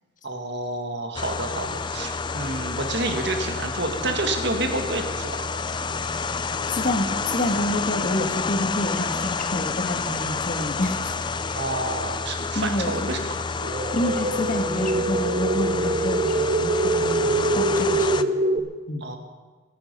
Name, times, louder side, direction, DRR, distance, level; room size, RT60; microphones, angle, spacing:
voice 1, 0.2-5.5 11.6-13.4 19.0-19.2, right 2 dB, 60° right, 4 dB, 1.9 m, -29 dB
sound 1, 1.1-18.2, left 4 dB, 25° left, 0.4 m, -29 dB
voice 2, 6.7-11.2 12.5-12.9 13.9-19.0, left 1 dB, 40° left, 5 dB, 1.5 m, -28 dB
sound 2, 13.6-18.6, right 2 dB, 40° right, 0.8 m, -24 dB
26.5 x 9.5 x 5.4 m, 1.4 s
head